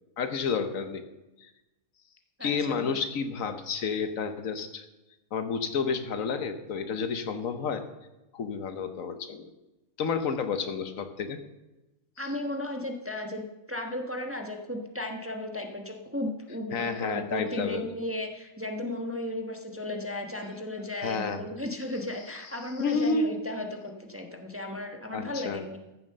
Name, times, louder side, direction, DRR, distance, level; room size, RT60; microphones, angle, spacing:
voice 1, 0.2-1.0 1.4-1.5 2.4-4.8 5.3-7.8 8.3-9.5 10.0-11.4 16.7-17.8 21.0-21.4 22.8-23.3 25.1-25.6, left 5 dB, 70° left, 9 dB, 1.3 m, -30 dB
voice 2, 2.4-3.0 12.2-13.4 13.7-25.8, left 1 dB, 10° right, 3 dB, 1.1 m, -35 dB
14.0 x 7.3 x 6.6 m, 1.0 s
omnidirectional pair, 1.5 m